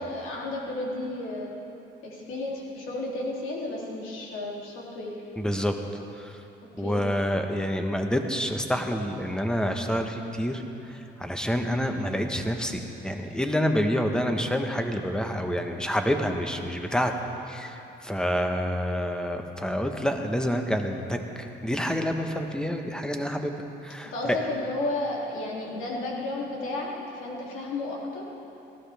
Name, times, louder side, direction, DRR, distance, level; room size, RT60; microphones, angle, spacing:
voice 1, 0.0-1.5 2.0-5.1 6.8-7.0 24.1-28.2, left 2 dB, 85° left, -3 dB, 2.9 m, -32 dB
voice 2, 5.4-5.7 6.2-6.4 6.8-10.6 10.9-17.1 17.5-24.4, equal, 5° left, 4 dB, 1.2 m, -28 dB
18.5 x 14.0 x 3.5 m, 3.0 s
cardioid pair, 90°, 20 cm